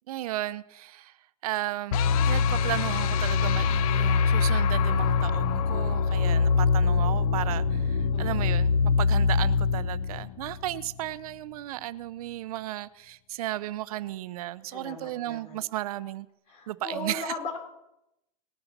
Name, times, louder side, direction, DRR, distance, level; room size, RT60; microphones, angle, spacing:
voice 1, 0.1-1.1 1.4-2.0 2.3-16.3 16.7-17.3, right 14 dB, 85° right, 16 dB, 0.7 m, -34 dB
sound 1, 1.9-11.0, left 5 dB, 75° left, 0.8 m, -24 dB
voice 2, 8.1-8.6 14.7-15.6 16.5-17.6, left 2 dB, 35° left, 3 dB, 4.5 m, -38 dB
19.5 x 7.9 x 5.9 m, 0.85 s
supercardioid pair, 130°, 18 cm